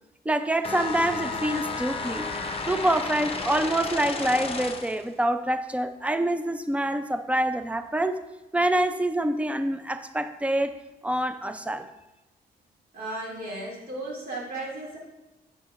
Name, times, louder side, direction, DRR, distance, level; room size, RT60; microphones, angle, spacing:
voice 1, 0.3-2.3 2.7-8.2 8.5-10.8 11.0-11.9, right 1 dB, 10° right, 10 dB, 0.4 m, -26 dB
sound 1, 0.6-5.1, left 4 dB, 35° left, 0.6 m, -32 dB
voice 2, 12.9-15.0, right 2 dB, 60° right, -5 dB, 2.3 m, -35 dB
8.0 x 6.6 x 2.4 m, 1.0 s
cardioid pair, 90°, 17 cm